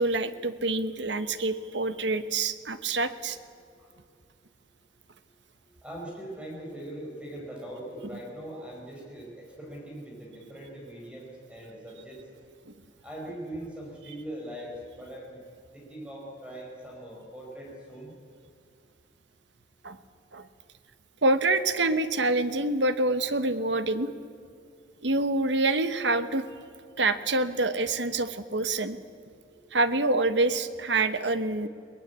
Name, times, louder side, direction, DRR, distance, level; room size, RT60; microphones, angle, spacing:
voice 1, 0.0-3.4 19.8-20.0 20.3-20.5 21.2-24.1 25.0-26.4 27.0-29.0 29.7-31.7, right 2 dB, 75° right, 11 dB, 1.2 m, -26 dB
voice 2, 5.8-12.2 13.0-15.4 15.7-18.1 29.5-29.6, right 1 dB, 5° right, -2 dB, 5.1 m, -41 dB
22.0 x 19.5 x 8.3 m, 2.3 s
head